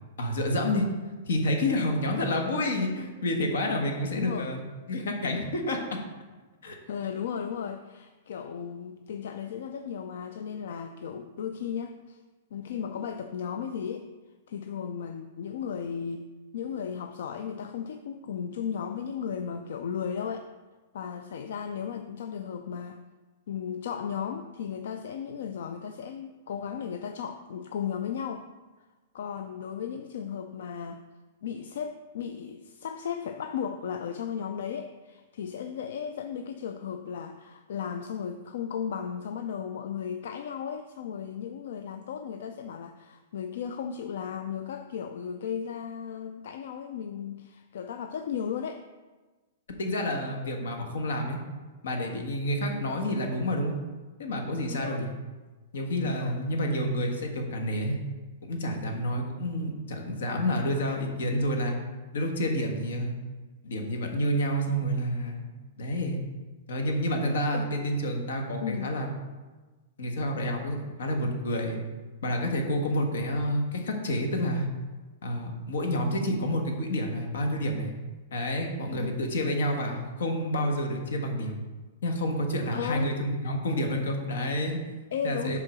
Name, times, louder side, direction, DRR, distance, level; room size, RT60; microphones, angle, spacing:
voice 1, 0.2-0.9 1.3-4.6 4.9-6.0 6.6-6.8 49.8-51.4 51.8-53.8 54.2-55.1 55.7-58.0 58.4-61.8 62.1-63.1 63.6-65.5 65.8-66.2 66.7-69.1 70.0-71.8 72.2-74.7 75.2-77.9 78.3-81.6 82.0-84.9 85.2-85.6, equal, 90° left, 3 dB, 1.4 m, -29 dB
voice 2, 4.1-4.6 6.9-12.2 12.5-14.1 14.5-16.3 16.5-20.5 20.9-23.0 23.5-28.5 29.1-31.0 31.4-48.8 54.7-55.1 56.0-56.4 67.5-67.7 68.6-69.0 78.9-79.2 82.7-83.1 85.1-85.6, left 7 dB, 70° left, 7 dB, 0.4 m, -35 dB
7.5 x 3.8 x 6.1 m, 1.3 s
hypercardioid pair, 165°, 0 cm